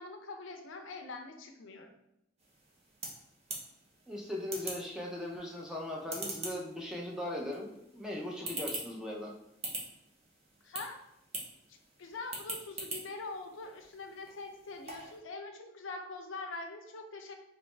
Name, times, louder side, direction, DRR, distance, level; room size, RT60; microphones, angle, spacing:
voice 1, 0.0-1.9 10.6-11.0 11.7-17.3, left 3 dB, 80° left, 5 dB, 0.5 m, -44 dB
sound 1, 2.4-15.2, right 2 dB, 35° right, 0.8 m, -45 dB
voice 2, 4.1-7.7 7.9-9.3, left 1 dB, 5° right, -2 dB, 0.5 m, -39 dB
3.2 x 3.0 x 3.2 m, 0.82 s
head